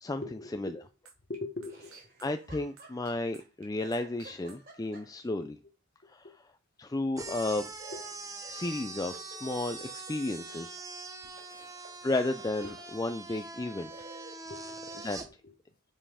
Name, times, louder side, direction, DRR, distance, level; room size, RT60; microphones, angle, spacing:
voice 1, 0.2-0.9 1.3-2.0 5.4-5.5 6.0-6.3 7.3-7.4 7.9-8.0 9.8-9.9 11.3-11.8 12.6-12.7 14.5-15.1 15.4-15.5, left 2 dB, 40° left, 1.1 m, -43 dB
sound 1, 1.0-4.5, right 3 dB, 65° right, 2.3 m, -50 dB
Laughter, 1.7-3.4 3.8-5.4 7.8-10.9 11.2-12.9 13.5-13.6 13.9-15.3, right 2 dB, 40° right, 4.2 m, -53 dB
voice 2, 2.2-5.6 6.1-6.3 6.8-7.7 8.5-10.8 12.0-14.1 15.0-15.2, left 2 dB, 15° left, 0.4 m, -33 dB
sound 2, 7.2-15.3, right 3 dB, 15° right, 0.9 m, -43 dB
7.4 x 5.4 x 4.9 m
head